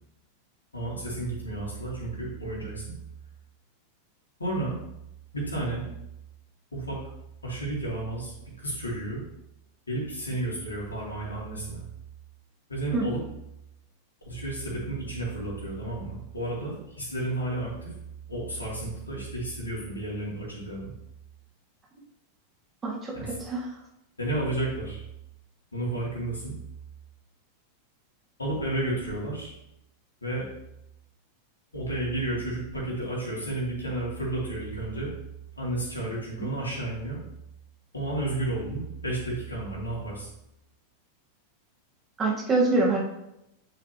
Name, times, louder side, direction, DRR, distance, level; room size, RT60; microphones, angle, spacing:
voice 1, 0.7-3.0 4.4-4.8 5.3-5.9 6.7-7.0 7.4-9.2 9.9-11.8 12.7-13.2 14.2-17.9 18.3-20.9 23.1-23.3 24.2-25.0 25.7-26.6 28.4-29.5 30.2-30.5 31.7-35.1 35.6-37.2 37.9-40.3, right 2 dB, 75° left, -5 dB, 2.8 m, -32 dB
voice 2, 22.8-23.7 36.4-36.5 42.2-43.0, right 3 dB, 20° right, -3 dB, 2.0 m, -25 dB
9.7 x 4.8 x 2.9 m, 0.84 s
figure-of-eight pair, 90°, 0 cm